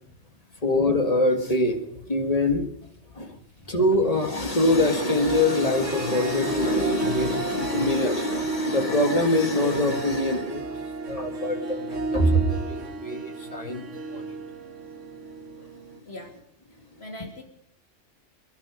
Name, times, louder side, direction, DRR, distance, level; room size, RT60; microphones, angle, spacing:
voice 1, 0.6-1.8 2.1-2.7 3.1-3.4 3.7-14.4 15.6-15.8, left 1 dB, 30° left, 5 dB, 2.0 m, -24 dB
sound 1, 2.3-8.8 9.1-11.6 11.9-13.0, left 2 dB, 20° right, 4.4 m, -49 dB
voice 2, 3.3-3.7 16.1-16.4 17.0-17.4, left 1 dB, 60° left, 3 dB, 3.1 m, -42 dB
Harp, 4.8-16.0, right 3 dB, 90° right, 1.7 m, -33 dB
23.0 x 12.0 x 5.0 m, 0.74 s
omnidirectional pair, 1.2 m